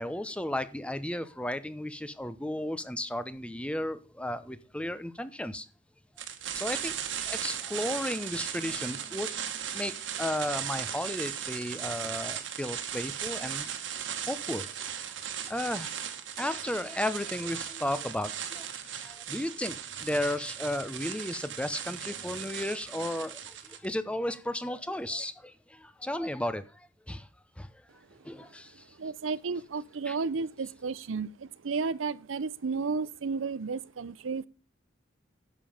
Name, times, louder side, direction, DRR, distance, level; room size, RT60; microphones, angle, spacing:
voice 1, 0.0-5.6 6.5-7.0 7.3-9.3 9.7-13.7 14.0-14.7 15.0-15.2 15.5-16.0 16.4-27.3 27.6-27.8 28.2-29.0 30.1-30.2, left 1 dB, 5° left, 0.8 m, -34 dB
sound 1, 6.2-23.9, right 9 dB, 70° right, 1.6 m, -37 dB
Bass guitar, 8.5-11.6, right 2 dB, 25° left, 5.1 m, -60 dB
voice 2, 28.1-34.5, right 4 dB, 90° right, 0.6 m, -33 dB
10.5 x 7.4 x 5.0 m
head